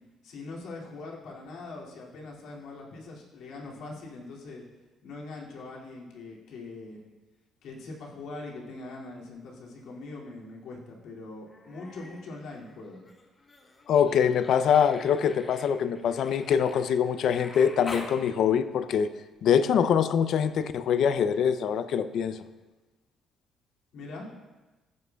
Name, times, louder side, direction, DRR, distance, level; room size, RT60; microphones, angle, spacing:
voice 1, 0.2-4.6 5.0-7.0 7.6-13.0 23.9-24.3, left 3 dB, 75° left, -3 dB, 2.4 m, -42 dB
Human voice, 11.5-12.2 12.5-18.2 19.7-19.8, left 3 dB, 25° left, 1.1 m, -45 dB
voice 2, 13.9-19.1 19.4-22.4, left 8 dB, 60° left, 12 dB, 0.5 m, -24 dB
15.0 x 9.6 x 2.3 m, 1.2 s
cardioid pair, 160°, 0 cm